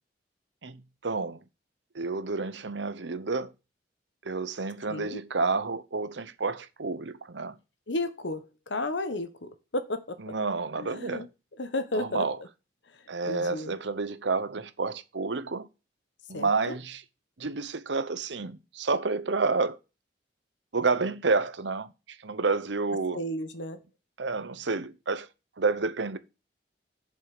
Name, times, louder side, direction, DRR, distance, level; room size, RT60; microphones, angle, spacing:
voice 1, 0.6-1.4 1.9-3.5 4.2-7.6 10.2-11.3 11.9-12.4 13.1-15.7 16.3-17.0 17.4-19.8 20.7-21.9 22.2-23.2 24.2-25.3 25.6-26.2, right 4 dB, 80° right, 0.9 m, -29 dB
voice 2, 4.9-5.2 7.9-10.2 10.8-11.3 11.6-12.3 13.3-13.7 16.3-16.8 23.1-23.8, left 1 dB, 85° left, 1.2 m, -33 dB
7.6 x 5.5 x 6.6 m
head